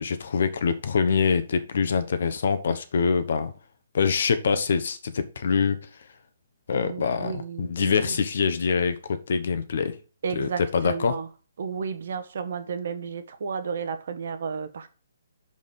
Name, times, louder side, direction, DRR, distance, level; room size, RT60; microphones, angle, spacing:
voice 1, 0.0-3.5 3.9-5.8 6.7-10.0 10.3-11.2, left 5 dB, 55° left, 1.0 m, -25 dB
voice 2, 6.7-8.1 10.2-11.3 11.6-14.9, right 6 dB, 55° right, 1.1 m, -33 dB
5.5 x 5.4 x 6.6 m
figure-of-eight pair, 130°, 0 cm